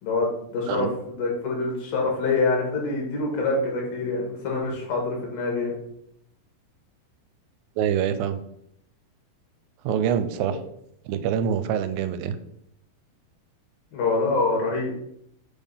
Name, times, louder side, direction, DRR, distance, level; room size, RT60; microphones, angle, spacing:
voice 1, 0.0-5.7 10.5-10.6 13.9-14.9, left 3 dB, 70° left, -1 dB, 3.4 m, -25 dB
voice 2, 7.8-8.4 9.8-10.6 11.1-12.4, right 8 dB, 85° right, 10 dB, 2.3 m, -25 dB
6.8 x 3.6 x 5.5 m, 0.72 s
omnidirectional pair, 4.2 m